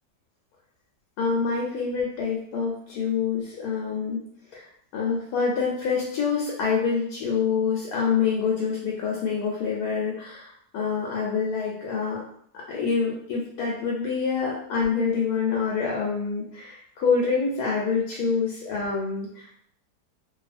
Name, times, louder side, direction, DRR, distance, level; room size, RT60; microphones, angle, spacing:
voice 1, 1.2-4.2 4.5-4.7 4.9-12.2 12.5-19.6, left 5 dB, 75° left, -3 dB, 1.1 m, -26 dB
2.7 x 2.4 x 2.5 m, 0.66 s
omnidirectional pair, 1.8 m